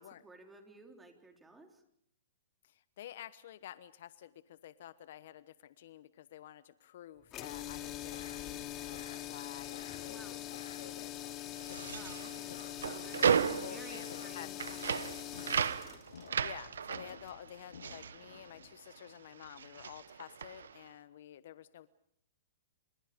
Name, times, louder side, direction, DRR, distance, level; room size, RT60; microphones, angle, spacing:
voice 1, 0.0-1.8 10.1-10.5 11.8-16.0, right 2 dB, 10° right, 3 dB, 3.8 m, -55 dB
voice 2, 2.6-11.2 13.2-14.7 16.4-21.9, left 11 dB, 60° left, 15 dB, 1.1 m, -51 dB
sound 1, 7.3-17.4, left 13 dB, 30° left, 2.7 m, -43 dB
sound 2, 7.8-18.7, left 7 dB, 75° left, 1.6 m, -55 dB
sound 3, 11.6-19.1 19.3-20.8, right 7 dB, 85° right, 1.2 m, -35 dB
29.0 x 26.5 x 5.2 m, 0.68 s
hypercardioid pair, 135°, 0 cm